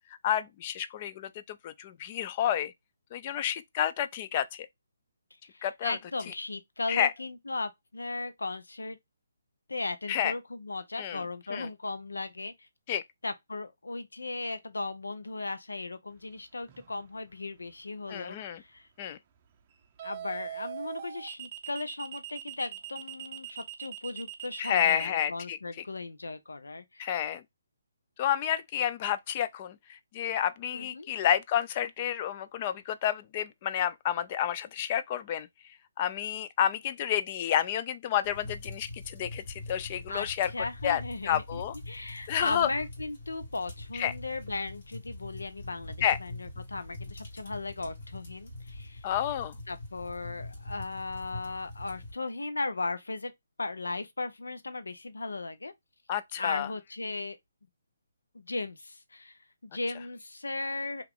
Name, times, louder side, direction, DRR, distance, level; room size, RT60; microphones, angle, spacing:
voice 1, 0.2-2.7 3.1-4.7 5.6-6.0 6.9-7.1 10.1-10.3 11.0-11.2 11.5-11.7 12.9-13.0 18.1-18.6 19.0-19.2 24.6-25.6 27.0-27.4 28.2-35.5 36.0-40.5 40.8-41.7 42.3-42.7 43.9-44.1 46.0-46.2 49.0-49.5 56.1-56.7, left 10 dB, 35° left, 0.3 m, -30 dB
voice 2, 5.5-9.0 9.7-12.7 13.2-18.9 20.0-27.1 30.7-31.1 40.1-49.1 49.7-53.3 53.6-55.7 56.4-57.4 58.3-61.0, left 3 dB, 85° left, 0.5 m, -37 dB
sound 1, 16.7-17.0 20.0-25.1, right 11 dB, 35° right, 0.5 m, -41 dB
sound 2, 38.2-52.1, left 2 dB, 55° left, 1.5 m, -43 dB
2.8 x 2.4 x 3.6 m
figure-of-eight pair, 150°, 0 cm